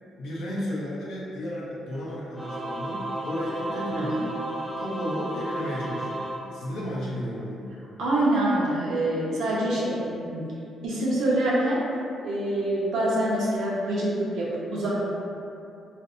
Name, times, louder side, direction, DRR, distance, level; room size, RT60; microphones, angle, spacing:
voice 1, 0.2-4.4 4.8-7.7, equal, 75° left, -6 dB, 0.6 m, -33 dB
Singing / Musical instrument, 2.3-7.2, right 1 dB, ahead, 0.4 m, -33 dB
voice 2, 3.7-4.1 8.0-10.5 10.8-11.8 12.2-15.1, right 1 dB, 80° right, -6 dB, 0.6 m, -25 dB
2.5 x 2.0 x 2.4 m, 2.6 s
cardioid pair, 90°, 0 cm